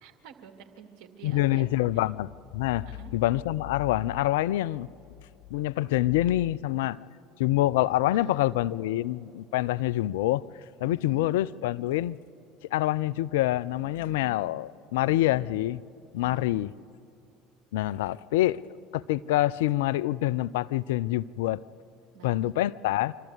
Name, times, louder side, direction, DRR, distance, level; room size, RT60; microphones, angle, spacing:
voice 1, 0.0-1.7 2.8-3.1 8.0-8.6 10.8-11.3 13.8-14.6 15.1-15.6 16.2-16.6 22.1-22.6, right 8 dB, 65° right, 2.0 m, -50 dB
voice 2, 1.2-2.8 3.1-4.9 5.5-7.0 7.4-10.4 10.8-12.2 12.7-15.8 16.1-16.7 17.7-18.6 18.9-21.6 22.2-23.1, left 15 dB, 70° left, 0.4 m, -26 dB
26.0 x 13.5 x 7.9 m
hypercardioid pair, 70°, 0 cm